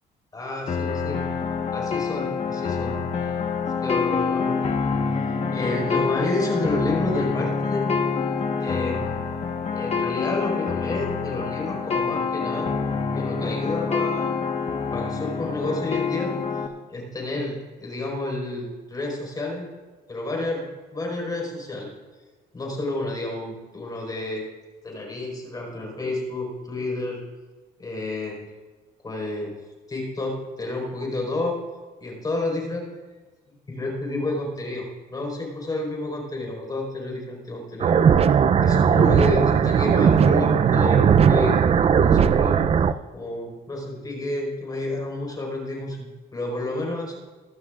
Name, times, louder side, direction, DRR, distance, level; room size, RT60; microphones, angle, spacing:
voice 1, 0.3-1.2 1.7-3.0 3.8-4.7 5.5-7.9 8.6-9.2 9.7-12.7 13.2-14.4 14.9-16.5 16.9-19.7 20.1-21.9 22.5-24.4 24.8-27.2 27.8-28.5 29.0-29.5 29.9-31.6 32.0-33.2 33.5-42.7 43.1-47.2, left 2 dB, 25° left, -1 dB, 4.7 m, -30 dB
sound 1, 0.7-16.7, left 5 dB, 40° left, 1.3 m, -26 dB
sound 2, 37.8-42.9, right 7 dB, 35° right, 0.5 m, -18 dB
23.5 x 12.0 x 2.5 m, 1.3 s
cardioid pair, 110°, 17 cm